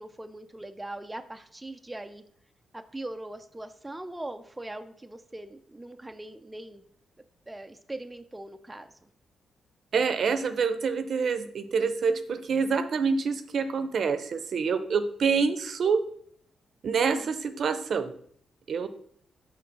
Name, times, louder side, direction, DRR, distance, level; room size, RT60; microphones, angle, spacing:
voice 1, 0.0-2.2 2.7-6.8 7.5-9.1 17.0-17.4, right 1 dB, 15° right, 6 dB, 0.5 m, -41 dB
voice 2, 9.9-16.0 16.8-18.1 18.7-18.9, right 5 dB, 60° right, 9 dB, 0.6 m, -26 dB
6.0 x 3.8 x 5.9 m, 0.62 s
cardioid pair, 85°, 0 cm